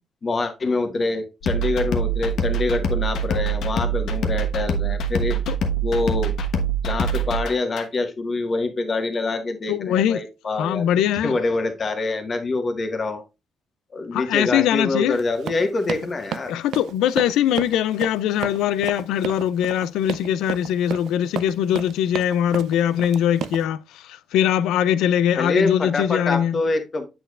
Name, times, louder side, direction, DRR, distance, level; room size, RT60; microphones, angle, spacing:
voice 1, 0.2-5.4 5.8-6.3 6.8-10.8 11.2-13.2 13.9-16.5 25.4-27.1, left 3 dB, 40° left, 1.5 m, -25 dB
sound 1, 1.4-7.8, right 3 dB, 75° left, 1.1 m, -24 dB
voice 2, 9.7-10.2 10.5-11.3 14.1-15.2 16.5-26.6, left 10 dB, 90° left, 0.4 m, -22 dB
Run, 15.1-23.6, right 10 dB, 80° right, 0.4 m, -33 dB
7.7 x 6.7 x 2.4 m
cardioid pair, 90°, 0 cm